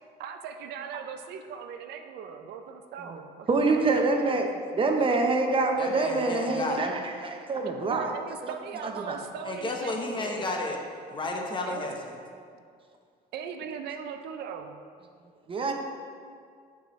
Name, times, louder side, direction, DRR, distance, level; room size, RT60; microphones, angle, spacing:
voice 1, 0.2-4.1 7.0-7.1 7.9-10.5 11.7-11.9 12.5-12.6 13.3-14.8, right 7 dB, 80° right, 7 dB, 0.5 m, -39 dB
voice 2, 3.5-4.5 4.7-8.1 8.4-8.5 8.8-9.2 15.5-15.7, right 3 dB, 30° right, 3 dB, 0.8 m, -26 dB
voice 3, 5.8-6.8 9.4-10.8 11.1-12.1, left 2 dB, 30° left, 0 dB, 1.0 m, -32 dB
9.5 x 4.9 x 3.1 m, 2.2 s
cardioid pair, 110°, 17 cm